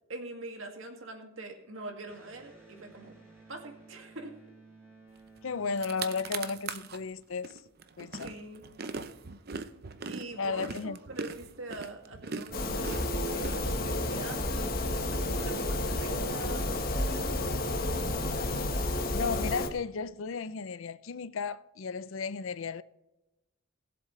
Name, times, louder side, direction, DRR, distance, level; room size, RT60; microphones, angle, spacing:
voice 1, 0.1-3.2 3.5-4.4 8.2-8.6 10.0-17.9, right 2 dB, 70° right, 2.1 m, -44 dB
Electric guitar, 2.0-7.5, right 3 dB, 10° right, 3.5 m, -56 dB
voice 2, 5.4-7.6 8.0-8.3 10.4-11.0 19.1-22.8, left 5 dB, 70° left, 0.5 m, -34 dB
sound 1, 5.4-5.5 5.7-7.0 7.4-14.2, right 4 dB, 45° right, 0.7 m, -40 dB
sound 2, 12.5-19.7, left 1 dB, 45° left, 1.2 m, -31 dB
20.0 x 7.7 x 3.2 m
head